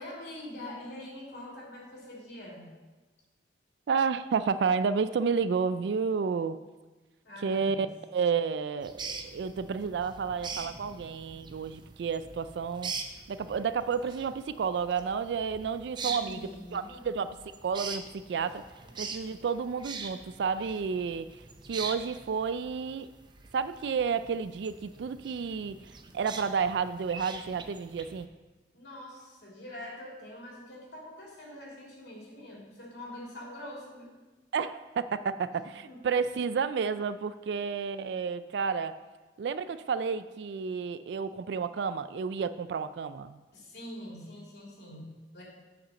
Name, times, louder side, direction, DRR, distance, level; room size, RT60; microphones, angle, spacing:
voice 1, 0.0-2.7 7.2-7.9 16.0-17.1 18.5-18.6 19.0-19.1 28.7-34.1 35.5-36.1 37.5-37.6 43.5-45.4, left 1 dB, 65° left, -4 dB, 3.2 m, -44 dB
voice 2, 3.9-6.6 7.4-7.9 8.1-12.9 13.3-17.4 17.6-18.6 19.0-21.4 21.7-23.1 23.5-28.3 34.5-39.0 39.4-43.4, right 6 dB, 70° right, 13 dB, 0.3 m, -31 dB
sound 1, 8.8-28.2, right 4 dB, 25° right, 0.6 m, -43 dB
7.5 x 5.9 x 6.4 m, 1.2 s
head